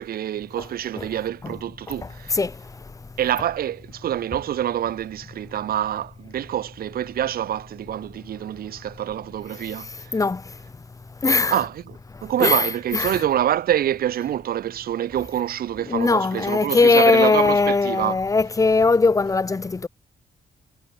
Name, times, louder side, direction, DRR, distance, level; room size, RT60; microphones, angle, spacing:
voice 1, 0.0-2.4 3.2-10.2 11.5-18.2, right 11 dB, 80° right, 1.7 m, -26 dB
voice 2, 11.2-11.5 12.4-12.6 12.9-13.2 15.9-19.9, left 3 dB, 20° left, 1.9 m, -19 dB
wide cardioid pair, 160°, 15 cm